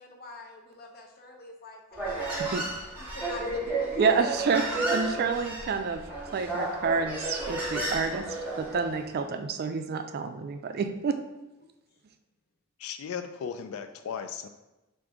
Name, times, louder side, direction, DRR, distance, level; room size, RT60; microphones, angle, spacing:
voice 1, 0.0-2.5 3.0-4.2, left 2 dB, 45° left, 2 dB, 0.7 m, -45 dB
Human voice, 1.9-9.0, right 2 dB, 10° right, 0.8 m, -32 dB
voice 2, 4.0-6.0 6.3-8.3 8.6-11.2, right 5 dB, 50° right, 8 dB, 0.3 m, -28 dB
voice 3, 12.8-14.5, left 7 dB, 70° left, 9 dB, 0.3 m, -36 dB
3.6 x 2.6 x 4.6 m, 1.0 s
head